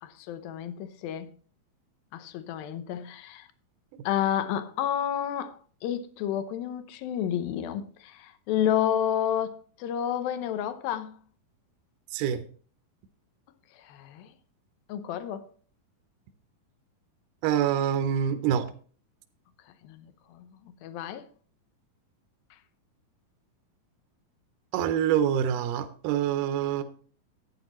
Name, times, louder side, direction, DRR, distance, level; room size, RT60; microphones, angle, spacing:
voice 1, 0.0-1.3 2.1-3.5 4.1-11.1 13.8-14.3 14.9-15.5 19.8-20.5 20.8-21.3, left 10 dB, 80° left, 2.6 m, -30 dB
voice 2, 17.4-18.7 24.7-26.8, right 9 dB, 75° right, 2.1 m, -26 dB
12.0 x 9.1 x 3.0 m
omnidirectional pair, 4.2 m